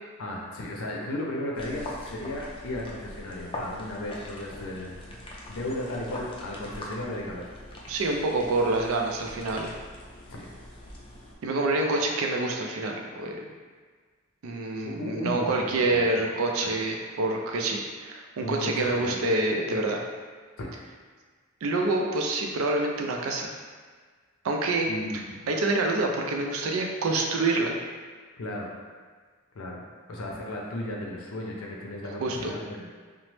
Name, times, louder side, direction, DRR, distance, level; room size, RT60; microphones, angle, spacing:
voice 1, 0.2-7.4 10.3-10.5 14.9-16.2 16.6-16.7 18.4-19.2 20.6-20.7 24.9-25.4 28.4-28.7 29.5-29.8 30.1-32.9, left 1 dB, 75° left, -2 dB, 0.5 m, -35 dB
sound 1, 1.5-11.3, left 1 dB, 25° left, 0.4 m, -42 dB
voice 2, 7.9-9.7 11.4-13.5 14.4-20.0 21.6-23.5 24.4-24.9 25.5-27.8 32.2-32.5, right 2 dB, 75° right, 1 dB, 0.4 m, -27 dB
2.9 x 2.0 x 3.1 m, 1.5 s
head